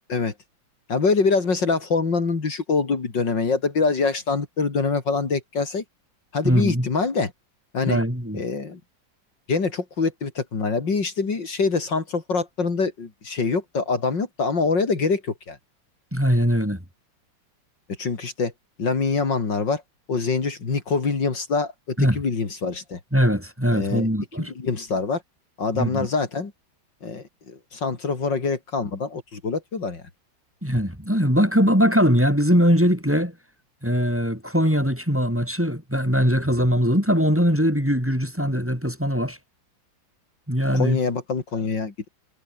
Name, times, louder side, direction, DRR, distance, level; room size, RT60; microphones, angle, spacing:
voice 1, 0.9-5.8 6.3-7.3 7.7-8.0 8.3-8.8 9.5-15.6 18.0-18.5 18.8-19.8 20.1-23.0 23.7-24.1 24.4-25.2 25.6-26.5 27.0-30.0 40.7-42.1, left 4 dB, 65° left, 3.7 m, -25 dB
voice 2, 6.4-6.9 7.8-8.4 16.1-16.8 22.0-22.2 23.1-24.5 25.7-26.1 30.6-33.3 33.8-39.4 40.5-41.0, equal, 5° right, 5.9 m, -21 dB
omnidirectional pair, 2.2 m